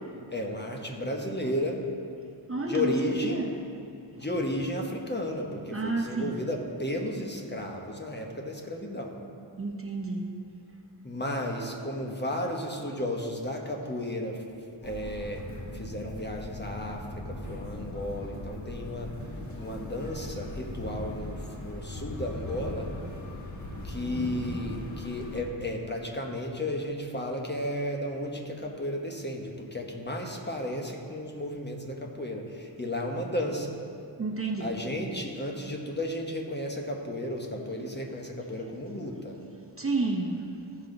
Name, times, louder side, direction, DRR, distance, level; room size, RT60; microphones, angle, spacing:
voice 1, 0.3-1.8 2.7-3.4 4.1-9.2 11.0-14.4 14.8-15.4 15.7-19.1 19.5-22.9 23.8-33.7 34.6-39.4, left 1 dB, 25° left, 1 dB, 1.1 m, -33 dB
voice 2, 2.5-3.5 5.7-6.3 9.6-10.2 34.2-34.7 39.8-40.5, right 3 dB, 30° right, 0 dB, 0.8 m, -30 dB
sound 1, 14.8-25.4, left 1 dB, 40° left, 1.3 m, -39 dB
14.5 x 5.6 x 3.9 m, 2.4 s
wide cardioid pair, 105°, 45 cm